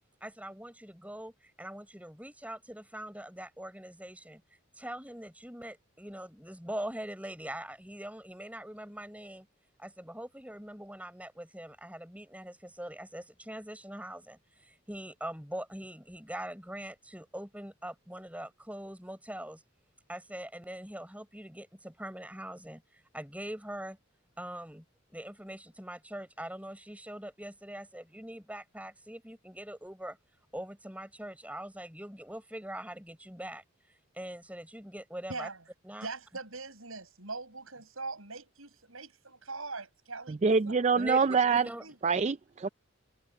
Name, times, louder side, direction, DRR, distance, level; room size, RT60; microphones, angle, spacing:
voice 1, 0.2-4.4 4.8-9.5 9.8-19.6 20.1-24.0 24.4-24.8 25.1-30.2 30.5-33.6 34.1-35.5 35.8-36.1 40.9-41.8, right 1 dB, 5° right, 6.3 m, -42 dB
voice 2, 35.3-35.6 36.0-42.0, right 3 dB, 70° right, 7.7 m, -42 dB
voice 3, 40.3-41.7 42.0-42.7, right 5 dB, 30° right, 0.3 m, -25 dB
head